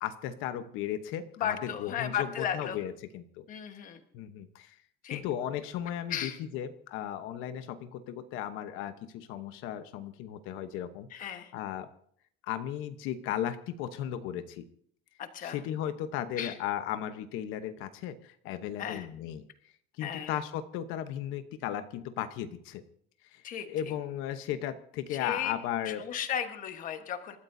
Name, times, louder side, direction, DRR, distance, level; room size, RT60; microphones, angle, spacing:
voice 1, 0.0-3.5 4.1-4.8 5.1-11.9 12.4-14.7 15.4-19.4 20.0-22.8 23.2-26.1, left 10 dB, 85° left, 9 dB, 1.0 m, -36 dB
voice 2, 1.4-2.8 3.5-4.0 5.0-5.2 6.1-6.4 11.1-11.5 15.2-15.6 16.4-16.5 18.8-19.1 20.0-20.3 23.4-23.7 25.2-25.5 25.9-27.4, left 9 dB, 40° left, 7 dB, 1.3 m, -34 dB
28.0 x 13.5 x 2.7 m, 0.62 s
cardioid pair, 175°, 20 cm